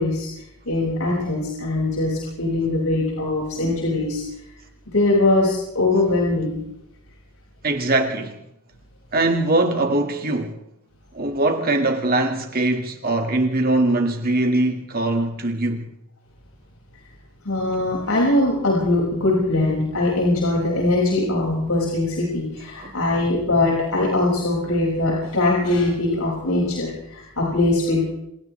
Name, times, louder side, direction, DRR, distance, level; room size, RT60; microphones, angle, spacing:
voice 1, 0.0-4.2 4.9-6.6 17.4-28.1, left 2 dB, 75° left, 6.1 m, -21 dB
voice 2, 7.6-8.4 9.1-10.6 11.1-15.9 22.8-22.9, right 2 dB, 40° right, 2.0 m, -21 dB
29.0 x 27.5 x 3.4 m
head